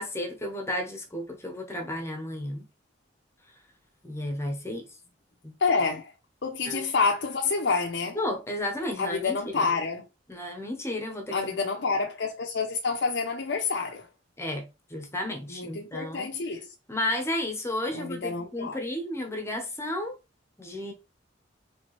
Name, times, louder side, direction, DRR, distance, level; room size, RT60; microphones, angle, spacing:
voice 1, 0.0-2.7 4.0-4.8 5.4-5.5 6.7-6.9 8.2-9.4 9.6-9.7 10.3-11.4 14.4-16.3 16.9-20.1 20.6-20.9, left 1 dB, 15° left, 0.9 m, -32 dB
voice 2, 5.6-6.1 6.4-8.2 9.0-10.1 11.3-14.1 15.5-16.7 17.9-18.8, left 4 dB, 70° left, 0.7 m, -28 dB
4.3 x 3.4 x 3.1 m
head